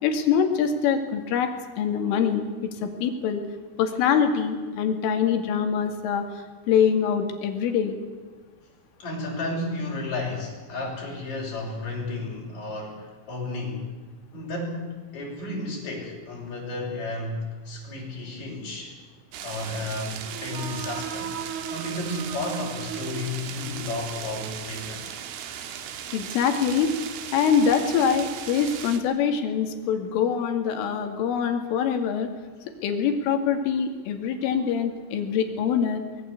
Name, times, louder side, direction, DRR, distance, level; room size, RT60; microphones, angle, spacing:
voice 1, 0.0-3.4 3.8-8.0 26.1-26.9 27.3-32.3 32.8-36.0, left 7 dB, 80° left, 6 dB, 4.8 m, -24 dB
voice 2, 9.0-13.9 14.3-19.0 19.4-25.0, left 2 dB, 35° left, -2 dB, 7.6 m, -33 dB
sound 1, 19.3-29.0, right 9 dB, 90° right, 4.4 m, -37 dB
sound 2, 20.2-24.0, right 8 dB, 70° right, 1.9 m, -37 dB
24.5 x 21.0 x 8.4 m, 1.4 s
omnidirectional pair, 5.6 m